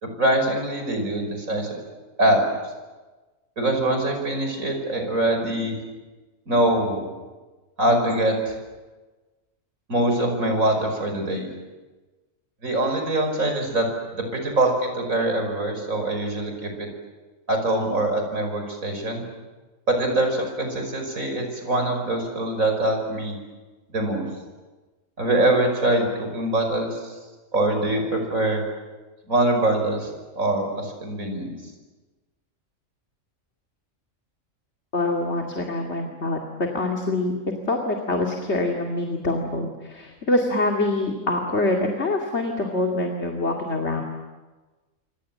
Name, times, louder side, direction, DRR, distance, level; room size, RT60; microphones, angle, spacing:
voice 1, 0.0-1.8 2.2-2.4 3.6-5.8 6.5-7.1 7.8-8.6 9.9-11.5 12.6-16.9 17.5-19.2 19.9-23.4 23.9-24.3 25.2-27.2 27.5-28.6 29.3-30.1 30.4-31.5, right 1 dB, 90° right, 4 dB, 6.0 m, -23 dB
voice 2, 34.9-36.4 36.7-37.3 37.7-44.0, left 2 dB, 55° left, 2 dB, 2.7 m, -25 dB
28.5 x 25.0 x 7.6 m, 1.2 s
omnidirectional pair, 1.4 m